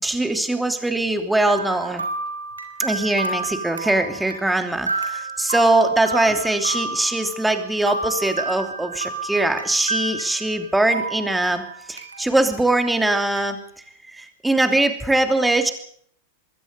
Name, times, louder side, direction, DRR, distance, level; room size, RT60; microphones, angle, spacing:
voice 1, 0.0-2.0 2.8-11.6 11.9-13.6 14.1-15.7, right 2 dB, 5° right, 6 dB, 2.9 m, -21 dB
sound 1, 1.5-10.7 10.9-12.4 12.7-12.8 13.4-13.5, right 3 dB, 80° right, 3.4 m, -30 dB
25.5 x 22.0 x 5.3 m, 0.63 s
figure-of-eight pair, 90°, 0 cm